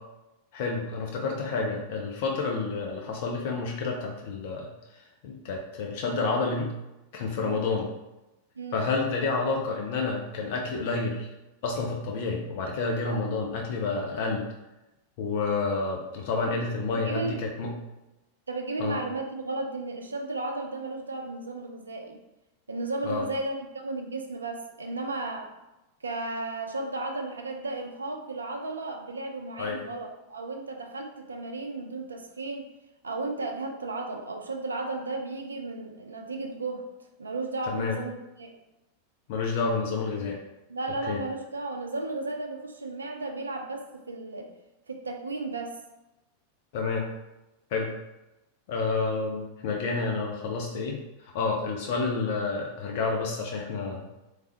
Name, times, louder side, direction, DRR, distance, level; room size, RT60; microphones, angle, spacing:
voice 1, 0.5-6.7 7.1-7.9 8.7-11.3 11.6-14.5 15.2-17.7 18.8-19.0 23.0-23.2 29.6-29.8 37.7-38.0 39.3-40.4 41.1-41.2 46.7-47.1 47.7-47.9 48.7-51.0 51.3-54.1, left 4 dB, 50° left, 0 dB, 0.5 m, -29 dB
voice 2, 16.9-17.4 18.5-22.2 22.7-25.5 26.0-32.7 33.0-36.9 37.2-38.6 40.7-44.5 44.9-45.8, right 2 dB, 75° right, 4 dB, 0.5 m, -34 dB
3.3 x 3.2 x 2.8 m, 0.98 s
figure-of-eight pair, 90°, 0 cm